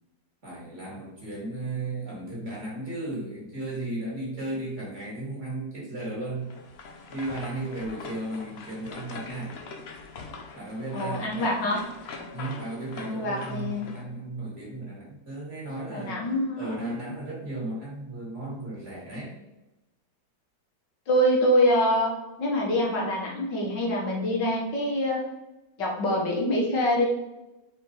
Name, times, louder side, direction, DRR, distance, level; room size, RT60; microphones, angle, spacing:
voice 1, 0.4-6.5 7.1-9.6 10.5-11.6 12.3-16.2 16.6-19.4, right 2 dB, 40° right, -5 dB, 2.5 m, -35 dB
sound 1, 6.4-14.0, left 4 dB, 55° left, 0.7 m, -43 dB
voice 2, 10.9-11.8 13.0-13.9 15.9-17.0 21.1-22.1 22.4-25.2 25.8-27.1, equal, 75° left, -2 dB, 2.2 m, -25 dB
5.5 x 4.6 x 3.9 m, 0.99 s
omnidirectional pair, 1.9 m